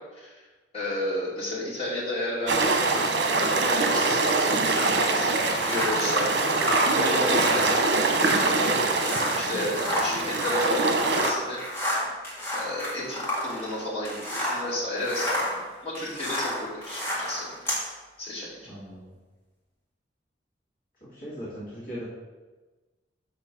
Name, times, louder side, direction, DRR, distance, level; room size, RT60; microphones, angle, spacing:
voice 1, 0.7-2.6 3.3-4.8 5.0-6.4 6.8-8.8 9.4-11.6 12.5-15.4 15.8-17.5 18.2-18.7, left 1 dB, 35° left, -8 dB, 2.7 m, -32 dB
sound 1, 2.5-11.3, right 3 dB, 85° right, 1.0 m, -24 dB
sound 2, 4.7-14.7 15.0-17.8, left 1 dB, 15° left, 1.8 m, -31 dB
voice 2, 18.6-19.1 21.0-22.1, equal, 50° left, -9 dB, 2.4 m, -39 dB
6.5 x 5.1 x 5.9 m, 1.2 s
head